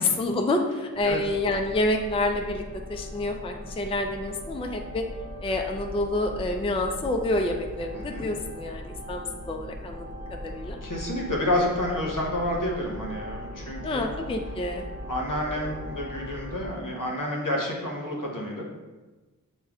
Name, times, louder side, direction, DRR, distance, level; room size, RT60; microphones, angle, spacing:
voice 1, 0.2-2.6 2.9-5.0 5.4-9.2 9.5-10.8 13.8-14.9, left 1 dB, 15° left, 3 dB, 0.4 m, -28 dB
sound 1, 0.9-16.7, equal, 50° right, 0.8 m, -39 dB
voice 2, 7.9-8.2 10.8-14.3 15.1-18.6, left 1 dB, 70° left, -1 dB, 1.0 m, -29 dB
6.4 x 2.2 x 3.5 m, 1.2 s
wide cardioid pair, 50°, 33 cm